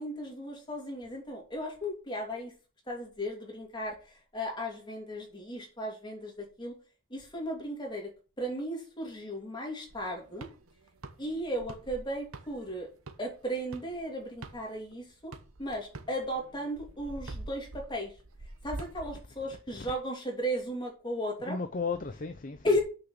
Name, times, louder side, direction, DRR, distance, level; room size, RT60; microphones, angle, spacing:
voice 1, 0.0-2.5 2.9-4.0 4.3-6.7 7.1-8.1 8.4-10.5 11.2-12.9 13.2-15.3 15.6-18.1 18.6-21.6 22.6-22.8, equal, 20° left, 2.9 m, -35 dB
sound 1, 9.9-14.9 15.3-19.1, right 2 dB, 90° right, 1.1 m, -45 dB
voice 2, 19.5-19.9 21.4-22.8, left 4 dB, 40° left, 0.6 m, -36 dB
6.6 x 6.0 x 7.2 m
head